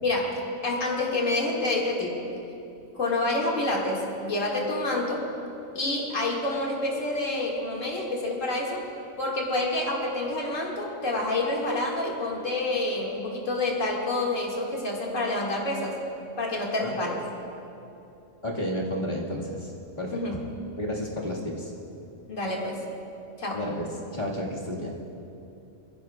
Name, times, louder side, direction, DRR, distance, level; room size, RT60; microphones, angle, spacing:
voice 1, 0.0-2.2 3.0-5.3 5.7-8.8 9.2-16.0 16.4-17.2 20.1-20.4 22.3-22.8 23.4-23.6, left 2 dB, 85° left, -3 dB, 2.4 m, -28 dB
voice 2, 18.4-19.7 20.0-20.2 20.8-21.7 23.5-24.9, equal, 35° left, -4 dB, 1.9 m, -31 dB
23.5 x 15.0 x 2.3 m, 2.8 s
omnidirectional pair, 1.3 m